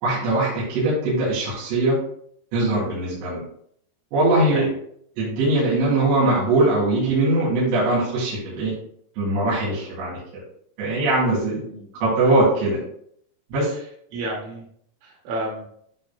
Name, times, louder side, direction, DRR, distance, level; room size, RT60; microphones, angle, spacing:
voice 1, 0.0-2.0 2.5-3.4 4.1-4.7 5.2-8.7 9.2-10.4 10.8-11.6 12.0-12.8 13.5-13.7, right 2 dB, 65° right, -9 dB, 4.7 m, -21 dB
voice 2, 11.3-11.9 13.6-14.7 15.0-15.6, right 1 dB, 90° right, -4 dB, 4.8 m, -32 dB
12.0 x 4.8 x 2.2 m, 0.66 s
omnidirectional pair, 5.7 m